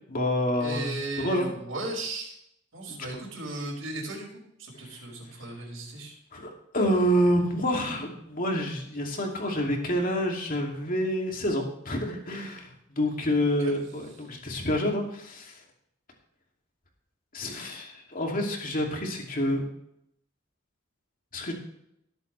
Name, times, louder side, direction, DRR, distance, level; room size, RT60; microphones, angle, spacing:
voice 1, 0.1-1.5 2.9-3.3 4.8-5.0 6.3-15.6 17.3-19.6 21.3-21.5, equal, 45° left, 0 dB, 2.6 m, -28 dB
voice 2, 0.6-2.4 2.7-4.3 4.6-6.1 13.6-13.7, right 2 dB, 80° right, -2 dB, 5.5 m, -36 dB
18.5 x 8.1 x 3.3 m, 0.75 s
head